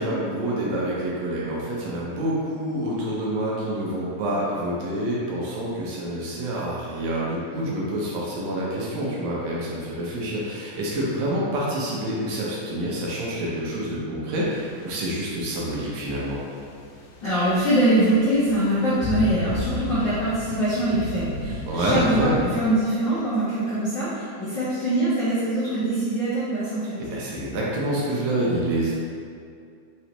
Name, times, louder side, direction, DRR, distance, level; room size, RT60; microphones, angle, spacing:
voice 1, 0.0-16.4 21.7-22.4 27.1-29.0, right 1 dB, 75° right, -5 dB, 2.0 m, -27 dB
sound 1, 14.4-22.6, left 2 dB, 85° left, 2.0 m, -35 dB
voice 2, 17.2-27.0, right 1 dB, 65° left, -13 dB, 1.1 m, -23 dB
5.2 x 3.1 x 2.9 m, 2.3 s
omnidirectional pair, 3.4 m